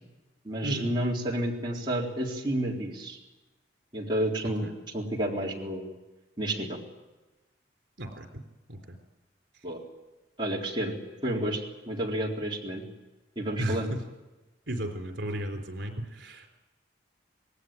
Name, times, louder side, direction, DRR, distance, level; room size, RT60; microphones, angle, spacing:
voice 1, 0.4-3.2 3.9-4.7 4.9-5.9 6.4-6.8 9.6-9.8 10.4-11.0 11.2-12.8 13.4-13.9, right 1 dB, 25° right, -3 dB, 3.9 m, -30 dB
voice 2, 8.0-8.4 8.7-9.0 13.6-14.0 14.7-16.5, right 1 dB, 70° right, 4 dB, 3.8 m, -34 dB
26.5 x 19.5 x 9.2 m, 1.1 s
head